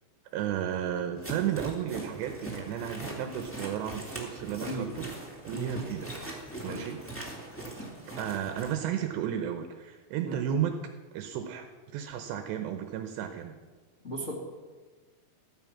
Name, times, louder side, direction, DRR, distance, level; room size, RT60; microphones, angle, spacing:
voice 1, 0.3-5.1 5.4-6.1 6.6-7.0 8.2-10.8 11.1-11.7 11.9-13.6, right 9 dB, 80° right, 6 dB, 2.7 m, -33 dB
sound 1, 1.2-8.7, right 2 dB, 5° left, 1.0 m, -41 dB
voice 2, 4.6-4.9 5.5-5.7 6.6-6.8 10.2-10.4 14.0-14.3, right 1 dB, 40° left, -4 dB, 1.0 m, -36 dB
15.0 x 13.0 x 5.9 m, 1.4 s
omnidirectional pair, 5.7 m